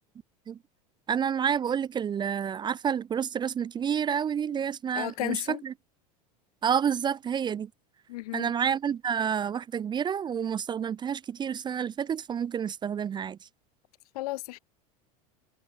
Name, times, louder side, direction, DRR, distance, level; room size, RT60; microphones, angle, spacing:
voice 1, 1.1-5.7 6.6-7.7 8.3-13.4, right 8 dB, 25° right, 0.4 m, -29 dB
voice 2, 4.9-5.6 8.1-8.5 14.1-14.6, left 19 dB, 75° left, 0.9 m, -33 dB
hypercardioid pair, 95°, 19 cm